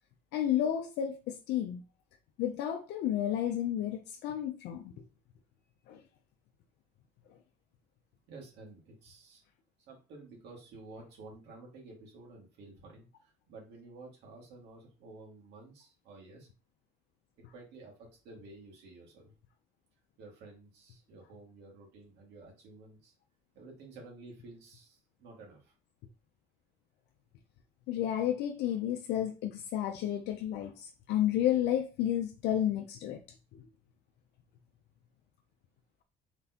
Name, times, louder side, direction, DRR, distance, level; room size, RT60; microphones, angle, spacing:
voice 1, 0.3-1.8 2.4-4.9 5.9-6.0 27.9-33.2 33.5-33.6, left 11 dB, 80° left, 0.5 m, -31 dB
voice 2, 8.3-9.4 9.9-16.5 17.4-19.3 20.2-23.1 23.5-25.7, right 3 dB, 80° right, 2.1 m, -52 dB
4.0 x 3.9 x 2.8 m
cardioid pair, 110°, 17 cm